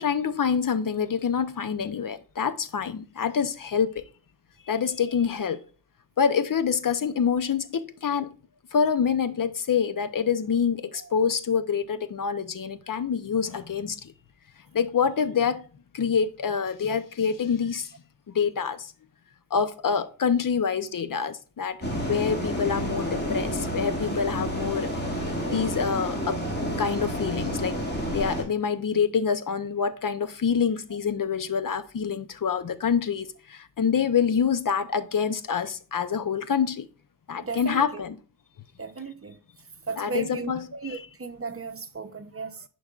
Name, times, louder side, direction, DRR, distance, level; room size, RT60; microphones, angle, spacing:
voice 1, 0.0-4.1 4.7-5.6 6.2-8.3 8.7-14.1 14.7-15.6 15.9-17.9 18.3-18.9 19.5-21.8 22.0-24.9 25.2-26.4 26.8-27.8 28.1-36.9 37.3-38.1 40.0-41.1, left 6 dB, 60° left, 0.7 m, -26 dB
sound 1, 21.8-28.4, equal, 25° left, 2.2 m, -29 dB
voice 2, 37.4-38.0 38.8-39.4 39.9-42.6, right 4 dB, 35° right, 0.7 m, -35 dB
10.5 x 4.7 x 2.4 m
wide cardioid pair, 115°, 38 cm